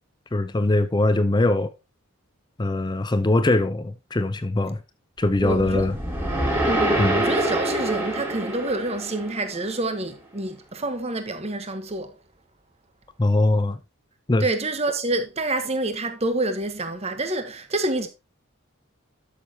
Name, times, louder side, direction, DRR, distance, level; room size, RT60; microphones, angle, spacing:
voice 1, 0.3-1.7 2.6-4.8 5.2-6.0 7.0-7.2 13.2-13.8 14.3-14.5, left 2 dB, 20° left, 0.5 m, -21 dB
sound 1, 5.3-9.7, right 1 dB, 10° right, 2.6 m, -26 dB
voice 2, 5.4-5.9 6.7-12.2 14.4-18.1, right 2 dB, 30° right, 1.1 m, -27 dB
12.5 x 6.6 x 2.8 m
head